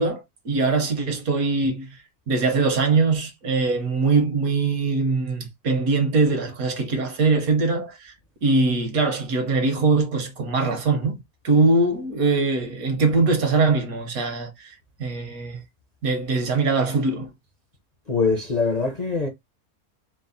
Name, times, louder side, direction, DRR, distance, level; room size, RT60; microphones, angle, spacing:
voice 1, 0.0-1.9 2.3-8.1 8.4-14.7 15.0-15.6 16.0-17.3, right 3 dB, 70° right, 1.5 m, -22 dB
voice 2, 18.1-19.3, left 4 dB, 35° left, 0.7 m, -23 dB
4.6 x 2.1 x 3.9 m
omnidirectional pair, 1.6 m